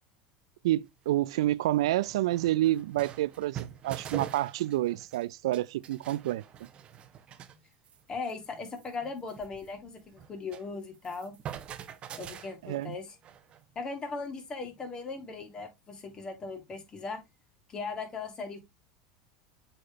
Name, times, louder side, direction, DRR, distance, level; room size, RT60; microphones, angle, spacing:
voice 1, 0.6-6.4 12.6-13.0, right 15 dB, 80° right, 0.4 m, -28 dB
sound 1, 0.9-1.0 1.5-1.6 1.8-5.3 5.5-7.6 7.9-8.0 8.3-8.4 8.7-10.7 10.9-13.7, right 10 dB, 40° right, 0.9 m, -44 dB
voice 2, 8.1-11.4 12.2-13.1 13.8-17.2 17.7-18.6, left 4 dB, 30° left, 2.4 m, -38 dB
7.6 x 4.3 x 3.0 m
hypercardioid pair, 100°, 3 cm